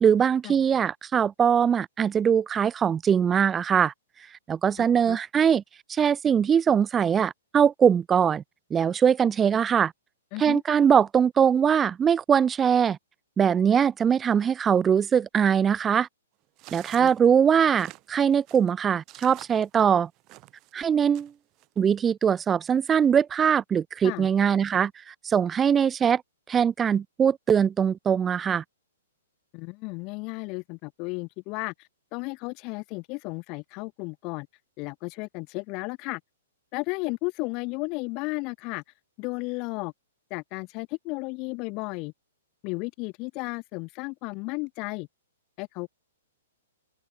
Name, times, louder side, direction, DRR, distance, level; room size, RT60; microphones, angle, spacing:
voice 1, 0.0-3.9 4.5-5.6 5.9-8.4 8.7-9.9 10.4-13.0 13.4-16.1 16.7-20.1 20.7-21.3 21.8-26.2 26.5-28.6, right 7 dB, 15° right, 0.6 m, -22 dB
voice 2, 4.8-5.2 10.3-10.6 17.0-17.1 24.0-24.3 29.5-34.5 34.8-36.2 36.7-38.8 39.2-39.9 40.3-42.1 42.6-45.1 45.6-45.9, left 28 dB, 35° left, 1.7 m, -34 dB
sound 1, 16.6-20.7 21.1-21.7, right 21 dB, 35° right, 1.9 m, -48 dB
open air
figure-of-eight pair, 115°, 0 cm